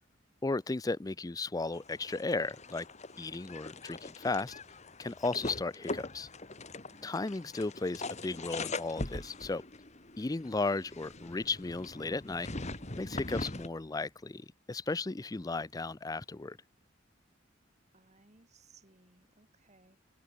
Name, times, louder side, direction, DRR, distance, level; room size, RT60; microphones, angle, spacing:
voice 1, 0.4-2.9 3.2-4.5 5.0-6.3 7.0-9.6 10.2-12.5 13.0-16.6, left 3 dB, 20° left, 0.5 m, -35 dB
sound 1, 1.7-13.7, left 2 dB, 35° left, 2.6 m, -42 dB
voice 2, 6.9-7.7 17.9-20.0, right 3 dB, 35° right, 3.3 m, -63 dB
head